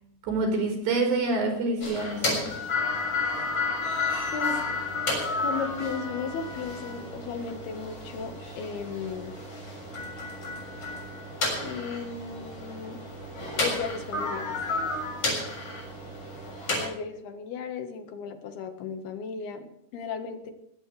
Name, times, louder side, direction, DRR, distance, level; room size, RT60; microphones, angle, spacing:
voice 1, 0.2-2.4, right 3 dB, 75° right, 3 dB, 6.7 m, -27 dB
sound 1, 1.8-16.9, left 3 dB, 35° left, 7.7 m, -32 dB
voice 2, 4.3-4.6 5.3-9.4 11.6-13.0 13.6-14.8 16.7-20.5, left 5 dB, 70° left, 6 dB, 3.4 m, -35 dB
21.0 x 18.0 x 3.4 m, 0.78 s
omnidirectional pair, 4.8 m